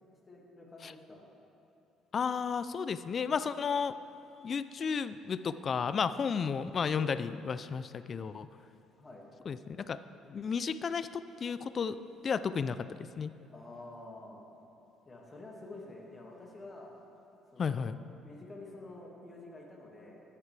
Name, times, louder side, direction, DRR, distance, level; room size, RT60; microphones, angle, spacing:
voice 1, 0.3-1.3 9.0-9.3 13.5-14.4 15.1-16.9 17.5-20.2, left 2 dB, 25° left, -2 dB, 1.9 m, -49 dB
voice 2, 2.1-4.0 4.4-8.5 9.5-12.0 12.2-13.3 17.6-18.0, left 6 dB, 40° left, 14 dB, 0.3 m, -33 dB
13.5 x 10.0 x 3.3 m, 2.8 s
cardioid pair, 105°, 0 cm